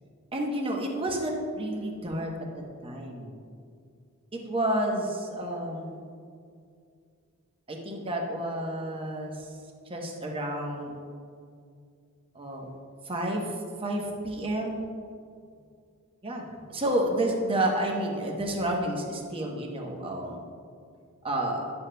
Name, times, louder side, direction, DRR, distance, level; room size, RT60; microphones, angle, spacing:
voice 1, 0.3-2.3 2.8-3.3 4.3-6.0 7.7-9.5 9.9-10.9 12.3-12.7 13.0-13.5 13.8-14.8 16.2-16.4 16.7-20.4 21.2-21.7, right 1 dB, 25° right, 0 dB, 0.9 m, -30 dB
11.0 x 7.2 x 2.2 m, 2.3 s
head